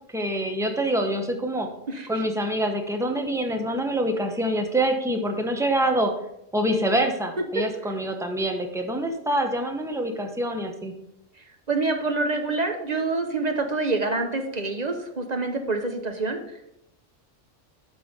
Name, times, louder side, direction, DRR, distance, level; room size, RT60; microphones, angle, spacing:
voice 1, 0.1-1.7 2.1-6.1 6.5-10.9, right 1 dB, 5° right, 4 dB, 0.9 m, -25 dB
voice 2, 1.9-2.2 11.7-16.4, right 3 dB, 35° right, 5 dB, 1.0 m, -26 dB
11.0 x 4.3 x 5.2 m, 0.82 s
omnidirectional pair, 1.3 m